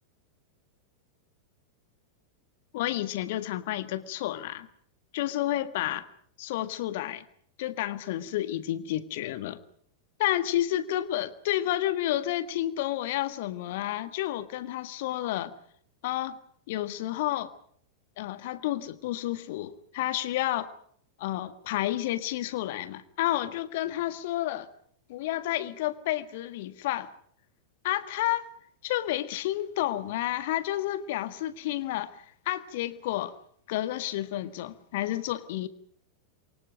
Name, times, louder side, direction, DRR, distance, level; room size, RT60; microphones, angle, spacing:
voice 1, 2.7-4.7 5.1-6.1 6.4-7.2 7.6-9.6 10.2-15.5 16.0-16.4 16.7-17.5 18.2-20.7 21.2-24.7 25.1-27.1 27.8-28.4 28.8-32.1 32.4-33.3 33.7-35.7, left 14 dB, 50° left, 1.6 m, -30 dB
29.0 x 24.0 x 5.1 m
figure-of-eight pair, 90°, 0 cm